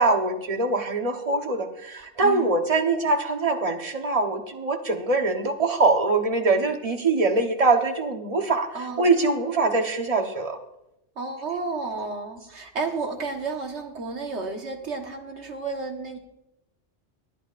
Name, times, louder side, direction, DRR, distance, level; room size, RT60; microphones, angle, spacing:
voice 1, 0.0-8.7 9.0-10.6, right 3 dB, 30° right, 5 dB, 1.1 m, -23 dB
voice 2, 2.2-2.5 8.7-9.1 11.2-16.2, right 4 dB, 65° right, 3 dB, 1.6 m, -32 dB
20.0 x 10.0 x 2.5 m, 0.87 s
omnidirectional pair, 1.2 m